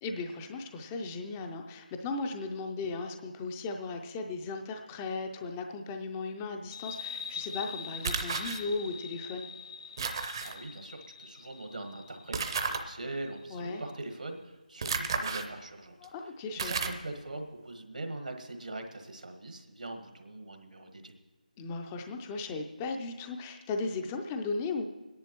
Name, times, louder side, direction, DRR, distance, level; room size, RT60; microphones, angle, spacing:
voice 1, 0.0-9.5 13.5-13.8 16.0-16.9 21.6-24.8, left 3 dB, 15° left, 4 dB, 0.4 m, -36 dB
sound 1, 6.7-13.9, left 6 dB, 40° left, 0.7 m, -44 dB
sound 2, 8.0-8.6 10.0-10.5 12.3-12.8 14.8-15.5 16.0-16.1 16.6-17.0, right 5 dB, 35° right, 0.6 m, -32 dB
voice 2, 10.4-21.1, right 2 dB, 75° right, 5 dB, 1.4 m, -42 dB
25.0 x 10.5 x 3.0 m, 1.2 s
figure-of-eight pair, 160°, 4 cm